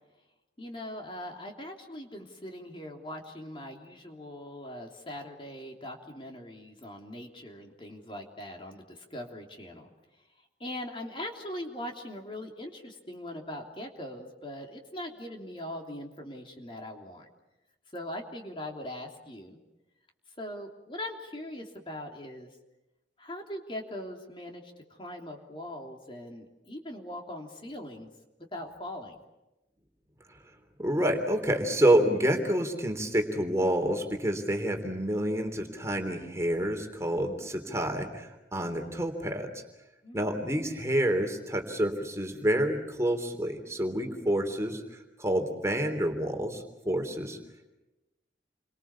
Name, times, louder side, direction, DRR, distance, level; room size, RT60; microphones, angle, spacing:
voice 1, 0.6-9.9 10.6-17.2 17.9-19.6 20.4-22.5 23.2-28.1 28.5-29.1 40.0-40.3, left 1 dB, 30° left, 2 dB, 3.2 m, -41 dB
voice 2, 30.8-39.5 40.1-44.8 45.2-47.4, right 1 dB, 15° right, 5 dB, 3.3 m, -28 dB
29.5 x 25.0 x 7.2 m, 1.0 s
head